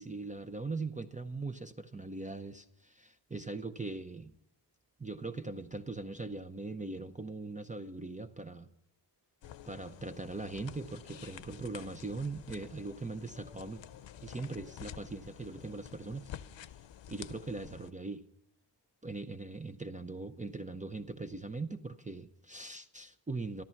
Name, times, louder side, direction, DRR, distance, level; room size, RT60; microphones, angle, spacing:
voice 1, 0.0-4.3 5.0-8.7 9.7-13.8 14.2-16.3 17.1-18.2 19.0-23.6, right 3 dB, 20° right, 9 dB, 0.6 m, -40 dB
sound 1, 9.4-17.9, left 10 dB, 85° left, 0.7 m, -49 dB
14.0 x 13.5 x 5.8 m, 0.77 s
wide cardioid pair, 135°, 44 cm